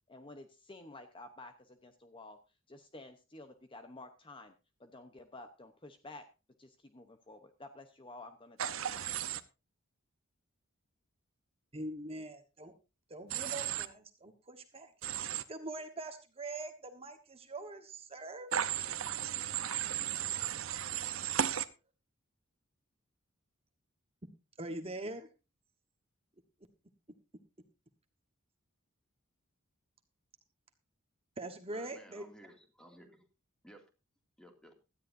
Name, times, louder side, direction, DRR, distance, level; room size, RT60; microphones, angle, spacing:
voice 1, 0.1-2.4 2.7-4.5 4.8-6.3 6.6-9.1, left 2 dB, 25° left, 8 dB, 0.8 m, -51 dB
Human voice / Train, 8.6-9.4 13.3-13.9 15.0-15.4 18.5-21.6, right 9 dB, 70° right, 0.8 m, -35 dB
voice 2, 11.7-12.7 13.1-18.5 24.6-25.3 31.4-32.2, right 2 dB, 30° right, 7 dB, 1.3 m, -43 dB
voice 3, 31.7-33.3 33.6-33.9 34.4-34.8, equal, 5° left, 4 dB, 2.3 m, -56 dB
17.0 x 13.0 x 2.6 m, 0.29 s
head